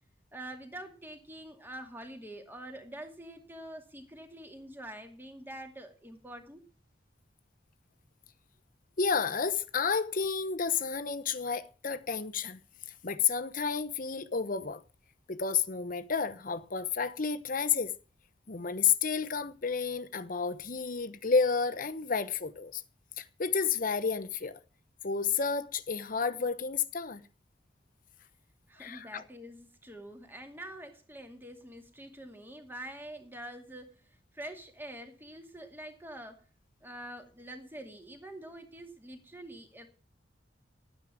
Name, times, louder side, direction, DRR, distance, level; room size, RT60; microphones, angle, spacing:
voice 1, 0.3-6.6 28.7-36.4 36.8-39.9, right 1 dB, 10° right, 2.3 m, -46 dB
voice 2, 9.0-12.6 13.0-14.8 15.3-17.9 18.5-22.8 23.2-24.6 25.0-27.2 28.8-29.2, left 5 dB, 50° left, 0.9 m, -31 dB
12.0 x 9.6 x 6.1 m
head